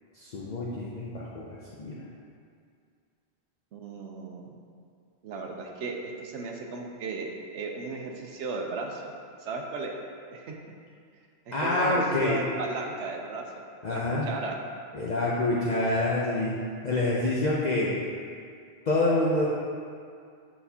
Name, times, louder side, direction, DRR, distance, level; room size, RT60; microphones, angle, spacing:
voice 1, 0.2-2.0 11.5-12.4 13.8-14.3 14.9-17.9 18.9-19.5, left 2 dB, 50° left, -6 dB, 0.6 m, -27 dB
voice 2, 3.7-4.5 5.2-9.1 9.4-9.9 10.3-10.7 11.5-13.6 13.9-14.5, right 3 dB, 90° right, 1 dB, 1.0 m, -36 dB
8.0 x 4.2 x 2.8 m, 2.2 s
omnidirectional pair, 1.1 m